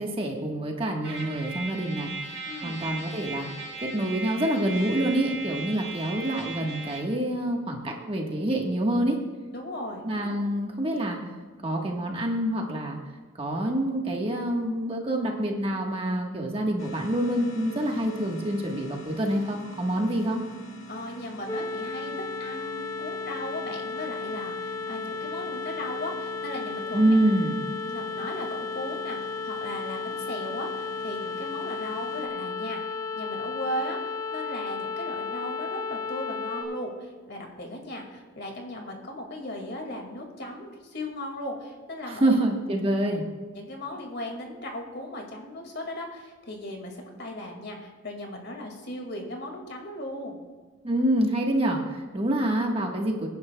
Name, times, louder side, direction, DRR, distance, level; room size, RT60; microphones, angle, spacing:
voice 1, 0.0-3.5 3.8-9.2 10.0-11.2 11.6-13.0 13.4-20.4 26.9-27.6 42.1-43.2 50.8-53.3, right 1 dB, 25° right, 1 dB, 1.4 m, -26 dB
Trumpet, 1.0-7.2, right 3 dB, 65° right, 3.3 m, -37 dB
voice 2, 2.4-2.8 9.5-10.0 20.0-20.1 20.9-22.1 22.4-27.2 27.8-42.4 43.5-50.4, left 1 dB, 50° left, 2 dB, 2.1 m, -37 dB
sound 1, 16.8-32.3, right 2 dB, 70° left, 1.9 m, -46 dB
sound 2, 21.5-36.6, left 4 dB, 15° left, 2.9 m, -34 dB
23.5 x 10.5 x 2.3 m, 1.4 s
head